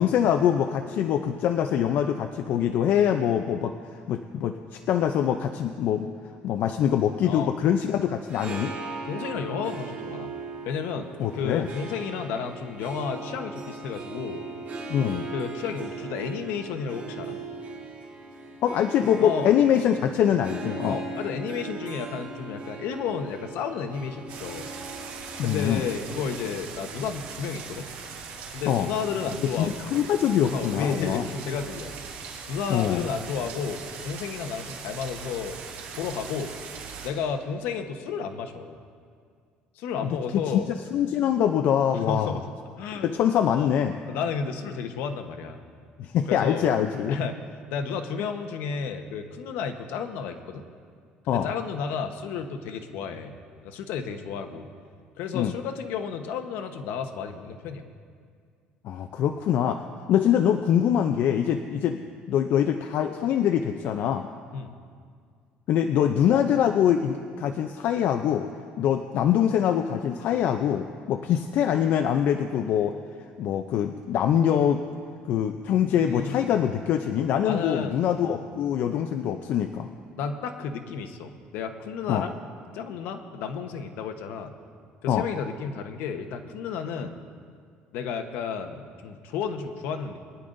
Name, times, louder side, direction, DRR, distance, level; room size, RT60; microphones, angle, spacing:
voice 1, 0.0-6.1 6.4-8.7 11.2-11.7 14.9-15.3 18.6-21.0 25.4-25.8 28.7-28.9 29.6-31.3 32.7-33.1 40.0-42.4 43.0-44.0 46.0-47.2 51.3-51.5 55.3-55.5 58.8-59.8 60.1-62.0 62.3-64.3 65.7-68.5 68.8-72.9 73.4-74.8 75.2-79.9 82.1-82.2 85.1-85.3, left 9 dB, 60° left, 6 dB, 0.5 m, -24 dB
Harp, 8.2-27.5, right 3 dB, 50° right, 3.6 m, -39 dB
voice 2, 9.1-10.3 10.6-14.4 15.3-17.4 19.2-19.5 20.9-24.7 25.4-27.9 28.5-30.0 30.5-31.9 32.5-35.6 35.9-36.5 37.0-38.8 39.8-40.7 41.9-42.5 42.8-43.1 43.5-43.7 44.1-45.6 46.3-46.7 47.1-47.4 47.7-50.6 51.3-53.4 53.6-54.7 55.2-57.9 64.5-64.7 75.9-76.5 77.4-78.4 80.2-82.4 82.7-84.5 85.0-87.2 87.9-90.2, left 6 dB, 80° left, 6 dB, 1.0 m, -32 dB
sound 1, 24.3-37.1, right 6 dB, 85° right, 3.0 m, -40 dB
22.5 x 10.5 x 2.6 m, 2.1 s
cardioid pair, 130°, 4 cm